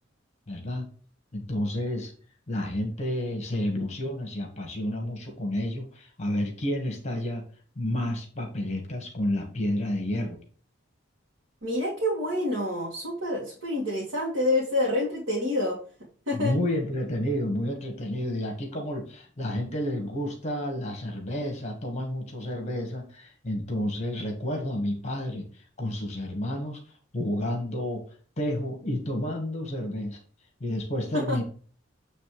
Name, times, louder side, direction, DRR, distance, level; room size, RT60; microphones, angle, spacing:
voice 1, 0.5-0.9 1.3-2.1 2.5-7.4 7.7-10.4 16.3-25.4 25.8-26.8 27.1-28.0 28.4-30.2 30.6-31.4, left 1 dB, 35° left, 2 dB, 1.5 m, -30 dB
voice 2, 11.6-15.8 16.3-16.5 31.1-31.4, left 1 dB, 85° right, -4 dB, 1.9 m, -27 dB
8.6 x 3.3 x 4.9 m, 0.43 s
head